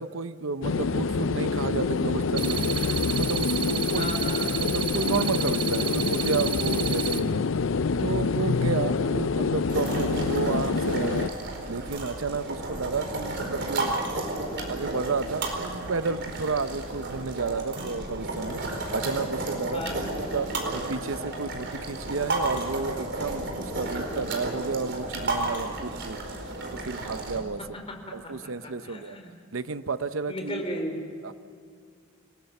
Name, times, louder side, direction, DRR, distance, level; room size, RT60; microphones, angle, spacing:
voice 1, 0.0-2.7 3.2-4.1 4.6-7.5 8.0-11.3 11.7-14.2 14.7-18.6 18.9-20.1 20.3-26.2 26.7-27.6 28.1-29.2 29.5-30.6 31.2-31.3, right 4 dB, 80° right, 12 dB, 0.8 m, -31 dB
sound 1, 0.6-11.3, left 4 dB, 70° left, 0.5 m, -26 dB
sound 2, 2.4-7.2, right 8 dB, 25° right, 1.2 m, -32 dB
voice 2, 3.9-4.6 8.8-9.2 19.7-20.1 27.6-29.3 30.3-31.1, equal, 30° left, 3 dB, 4.5 m, -36 dB
sound 3, 9.7-27.4, right 2 dB, 55° right, 4.4 m, -32 dB
29.0 x 18.5 x 7.1 m, 2.3 s
head